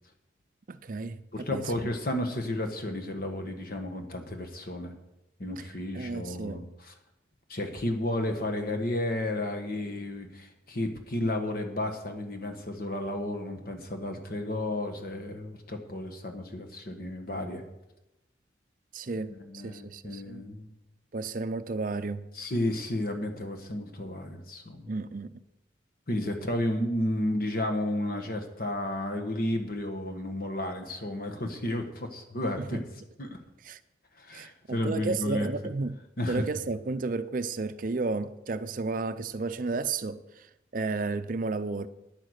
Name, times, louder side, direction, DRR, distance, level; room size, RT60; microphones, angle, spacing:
voice 1, 0.7-1.7 5.9-6.6 18.9-19.3 19.6-20.4 21.1-22.3 24.9-25.3 32.6-32.8 33.6-33.8 34.3-36.0 36.3-40.5 40.7-41.9, right 3 dB, 45° right, 0.5 m, -32 dB
voice 2, 1.3-4.9 5.4-6.9 7.5-17.6 19.3-20.7 22.3-24.9 26.1-32.8 33.2-33.4 34.2-35.5 36.2-36.4, left 1 dB, 50° left, 1.5 m, -32 dB
9.8 x 9.3 x 6.5 m
head